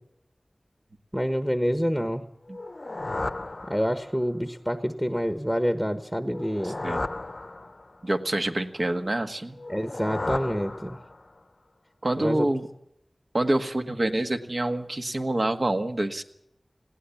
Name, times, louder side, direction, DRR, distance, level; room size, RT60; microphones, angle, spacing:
voice 1, 1.1-2.2 3.7-6.8 9.7-11.0 12.2-12.5, equal, 5° right, 9 dB, 1.3 m, -27 dB
sound 1, 2.5-4.3 6.2-8.1 9.6-11.4, left 2 dB, 50° left, 0.7 m, -34 dB
voice 2, 6.6-7.1 8.0-9.6 12.0-12.7 13.3-16.2, right 1 dB, 55° right, 7 dB, 1.7 m, -27 dB
21.0 x 17.0 x 7.1 m, 0.76 s
wide cardioid pair, 65°, 0 cm